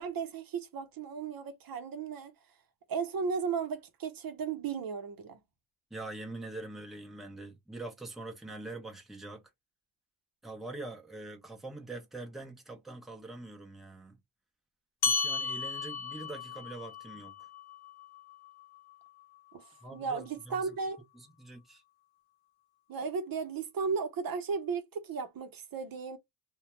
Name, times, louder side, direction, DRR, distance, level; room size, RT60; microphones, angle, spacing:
voice 1, 0.0-2.3 2.9-5.4 19.5-19.6 19.9-21.0 22.9-26.2, right 5 dB, 60° right, 0.7 m, -35 dB
voice 2, 5.9-9.4 10.4-14.2 15.1-17.5 19.8-20.7 21.1-21.8, right 2 dB, ahead, 0.7 m, -44 dB
sound 1, 15.0-19.8, left 4 dB, 70° left, 1.0 m, -36 dB
2.3 x 2.1 x 3.0 m
cardioid pair, 65°, 39 cm